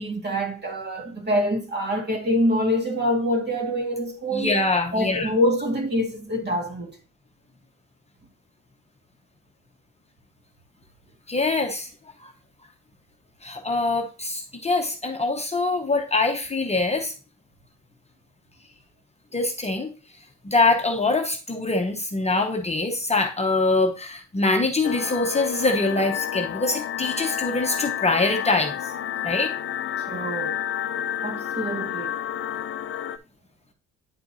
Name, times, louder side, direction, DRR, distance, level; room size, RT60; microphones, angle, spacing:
voice 1, 0.0-4.5 4.9-7.0 30.1-30.6 31.2-32.2, equal, 35° right, 1.9 m, -25 dB
voice 2, 4.3-5.3 11.3-11.9 12.2-12.3 13.4-17.1 19.3-19.9 20.4-28.9 29.2-29.5, left 3 dB, 20° left, 0.9 m, -24 dB
sound 1, 24.8-33.2, left 11 dB, 45° left, 0.5 m, -30 dB
9.7 x 4.5 x 2.7 m
cardioid pair, 90°, 30 cm